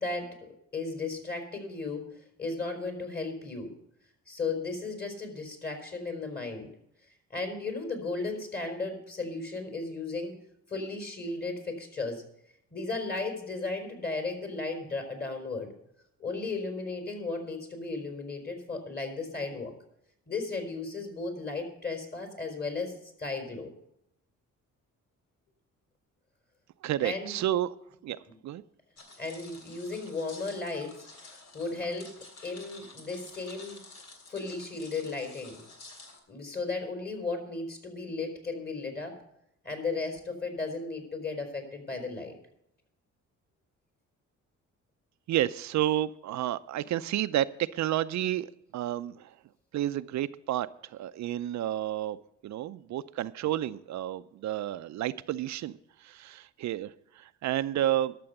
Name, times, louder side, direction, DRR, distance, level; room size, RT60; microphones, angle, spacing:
voice 1, 0.0-2.1 2.4-3.7 4.3-6.7 7.3-10.3 10.7-12.2 12.7-15.7 16.2-19.7 20.3-23.7 27.0-27.4 29.2-32.1 32.4-33.8 34.3-35.6 36.3-39.2 39.6-42.3, left 3 dB, 30° left, 4 dB, 4.1 m, -35 dB
voice 2, 26.8-27.7 28.0-28.6 45.3-49.3 49.7-58.1, right 12 dB, 65° right, 13 dB, 0.5 m, -31 dB
sound 1, 29.0-36.2, left 3 dB, 65° left, 3.0 m, -50 dB
12.5 x 6.9 x 7.9 m, 0.78 s
cardioid pair, 90°, 30 cm